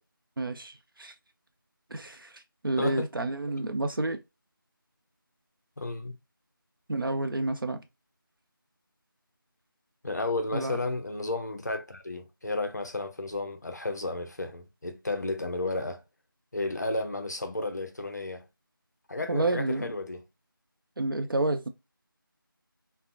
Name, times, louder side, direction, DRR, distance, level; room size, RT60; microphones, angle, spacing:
voice 1, 0.4-1.1 1.9-4.2 6.9-7.8 10.5-10.8 19.3-19.9 21.0-21.7, right 2 dB, 70° right, 0.5 m, -30 dB
voice 2, 2.8-3.1 5.8-6.1 10.0-16.0 16.5-18.5 19.1-20.2, left 2 dB, 50° left, 0.5 m, -32 dB
2.5 x 2.0 x 2.5 m
figure-of-eight pair, 170°, 12 cm